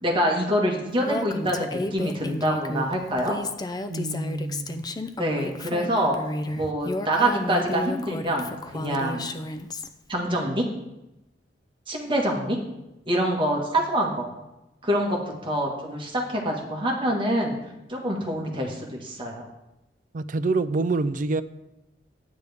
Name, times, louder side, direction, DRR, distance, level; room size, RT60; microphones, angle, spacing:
voice 1, 0.0-3.3 5.2-6.2 6.5-9.3 10.1-10.7 11.9-12.6 13.1-14.3 14.8-17.6 17.9-19.4, right 1 dB, 30° right, 0 dB, 1.6 m, -25 dB
Female speech woman speaking, 1.0-9.9, left 2 dB, 20° left, 0.5 m, -32 dB
voice 2, 3.9-4.9 20.1-21.4, right 3 dB, 45° right, 13 dB, 0.4 m, -26 dB
11.0 x 9.5 x 3.5 m, 0.94 s
head